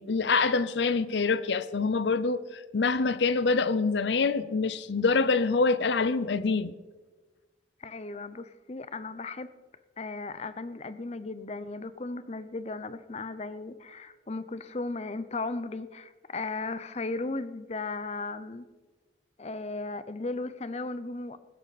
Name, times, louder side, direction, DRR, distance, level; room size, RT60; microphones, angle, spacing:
voice 1, 0.0-6.7, left 4 dB, 75° left, 0.6 m, -26 dB
voice 2, 7.8-9.5 10.0-18.6 19.4-21.4, left 3 dB, 35° left, 0.6 m, -36 dB
15.5 x 13.0 x 4.1 m
head